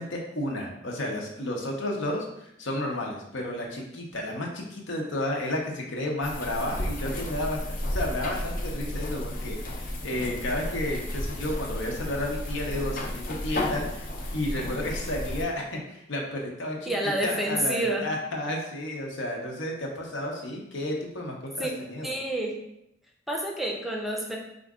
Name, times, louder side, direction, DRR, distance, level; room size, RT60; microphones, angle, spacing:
voice 1, 0.0-16.9 17.2-22.1, left 1 dB, 85° left, 0 dB, 0.9 m, -32 dB
sound 1, 6.2-15.4, left 1 dB, 50° left, 0.6 m, -33 dB
voice 2, 16.9-18.1 21.6-21.7 22.0-22.5 23.3-24.4, right 1 dB, ahead, -1 dB, 0.4 m, -28 dB
4.5 x 2.5 x 3.6 m, 0.82 s
head